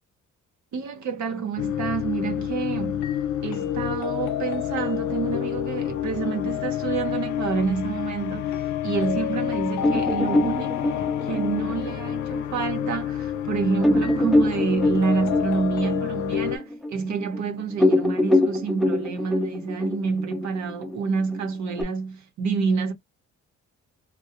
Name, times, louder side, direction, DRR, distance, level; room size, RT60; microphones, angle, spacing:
voice 1, 0.7-3.1 3.4-22.9, right 5 dB, 70° right, 0.9 m, -28 dB
sound 1, 1.6-16.6, left 11 dB, 70° left, 0.5 m, -28 dB
sound 2, 9.8-12.9 13.3-13.4 13.8-17.4 17.7-21.8, left 1 dB, ahead, 0.5 m, -24 dB
2.2 x 2.2 x 2.8 m
cardioid pair, 90°, 30 cm